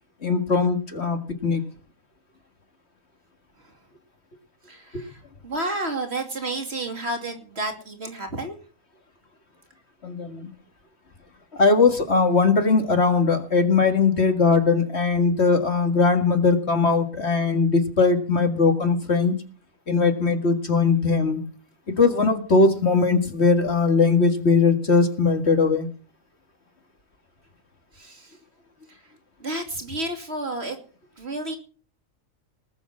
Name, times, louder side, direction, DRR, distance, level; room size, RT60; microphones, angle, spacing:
voice 1, 0.2-1.6 4.9-5.0 10.0-10.5 11.5-19.4 19.9-21.4 21.9-25.9, left 4 dB, 50° left, 6 dB, 2.2 m, -20 dB
voice 2, 4.7-8.6 27.9-28.4 28.9-29.1 29.4-30.8 31.2-31.6, right 2 dB, 45° right, 5 dB, 2.8 m, -31 dB
19.5 x 7.1 x 7.3 m, 0.41 s
omnidirectional pair, 1.5 m